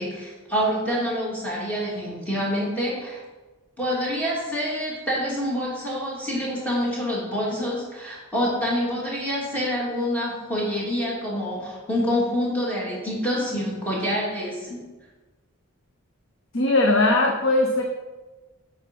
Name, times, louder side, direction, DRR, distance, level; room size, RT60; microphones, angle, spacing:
voice 1, 0.0-3.2 3.8-14.8, equal, 5° left, -6 dB, 2.9 m, -27 dB
voice 2, 16.5-17.8, left 2 dB, 70° left, 1 dB, 1.0 m, -19 dB
8.6 x 6.9 x 5.5 m, 1.2 s
head